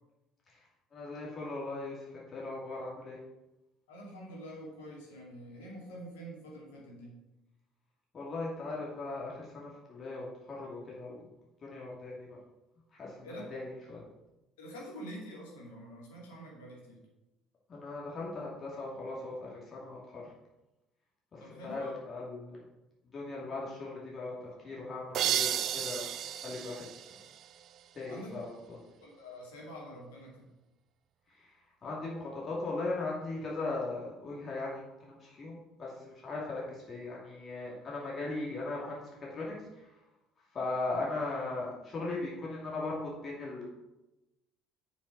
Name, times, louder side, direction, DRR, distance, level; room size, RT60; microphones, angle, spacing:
voice 1, 0.5-3.2 8.1-11.2 11.6-12.4 12.9-14.0 17.7-20.3 21.3-22.6 23.1-26.1 26.4-27.2 27.9-28.8 31.3-40.0 40.5-43.7, left 2 dB, 35° left, -4 dB, 2.5 m, -39 dB
voice 2, 3.9-7.2 13.2-13.6 14.6-17.0 21.4-21.9 28.1-28.4 29.0-30.5, equal, 70° left, -3 dB, 2.4 m, -46 dB
sound 1, 25.1-27.9, right 10 dB, 50° right, 0.5 m, -33 dB
6.8 x 5.5 x 6.0 m, 0.98 s
figure-of-eight pair, 55°, 0 cm